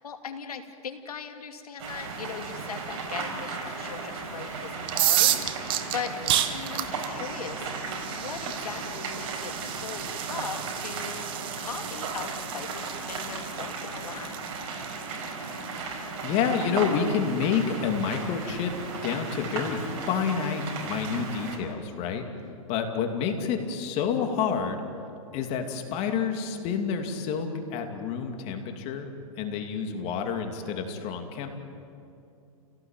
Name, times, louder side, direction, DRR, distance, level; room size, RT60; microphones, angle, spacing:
voice 1, 0.0-6.2 6.5-14.4 22.3-22.5, left 6 dB, 90° left, 6 dB, 2.6 m, -39 dB
sound 1, 1.8-21.6, right 4 dB, 45° right, 5.3 m, -36 dB
sound 2, 4.8-16.6, right 12 dB, 25° right, 1.2 m, -32 dB
voice 2, 15.8-18.7 19.0-22.2 22.7-24.8 25.3-29.1 29.4-31.5, left 6 dB, 35° left, 5 dB, 2.7 m, -29 dB
29.0 x 18.0 x 9.2 m, 2.6 s
hypercardioid pair, 145°, 19 cm